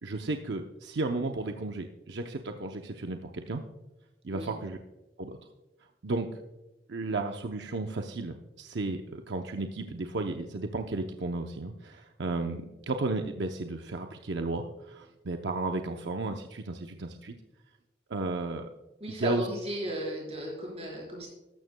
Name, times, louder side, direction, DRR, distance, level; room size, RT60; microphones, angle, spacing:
voice 1, 0.0-3.6 4.2-4.8 5.2-5.4 6.0-6.3 6.9-17.4 18.1-18.7 19.2-19.5, right 2 dB, 80° right, 5 dB, 0.6 m, -33 dB
voice 2, 19.0-21.3, right 1 dB, 35° right, -1 dB, 4.3 m, -35 dB
13.5 x 12.5 x 2.2 m, 1.0 s
head